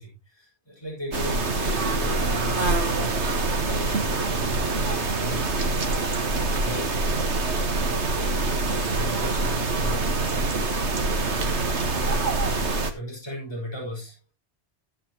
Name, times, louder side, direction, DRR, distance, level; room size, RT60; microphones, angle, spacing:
voice 1, 0.0-7.4 8.3-10.3 12.9-14.2, left 1 dB, 20° left, -3 dB, 5.2 m, -38 dB
sound 1, 1.1-12.9, right 3 dB, 75° right, 1.8 m, -25 dB
Piano, 1.7-8.1, right 2 dB, 55° right, 5.8 m, -46 dB
14.0 x 9.5 x 3.0 m, 0.25 s
omnidirectional pair, 1.2 m